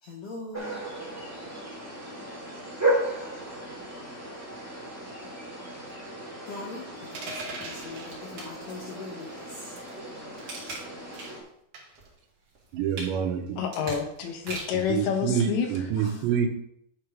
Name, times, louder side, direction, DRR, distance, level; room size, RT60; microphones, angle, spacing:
voice 1, 0.0-0.8 6.5-9.8 14.3-14.4 16.0-16.1, left 3 dB, 65° left, 2.3 m, -41 dB
sound 1, 0.5-11.4, right 1 dB, 10° right, 1.0 m, -35 dB
sound 2, 7.1-8.1 9.8-10.0 11.7-12.1, right 3 dB, 60° right, 2.4 m, -39 dB
sound 3, 7.2-9.0 9.5-11.5 11.9-14.9 15.4-15.5, right 3 dB, 40° right, 2.8 m, -42 dB
voice 2, 12.7-13.6 14.7-16.5, right 8 dB, 85° right, 3.2 m, -27 dB
voice 3, 13.6-15.7, left 7 dB, 90° left, 3.5 m, -28 dB
9.9 x 4.7 x 5.3 m
omnidirectional pair, 5.0 m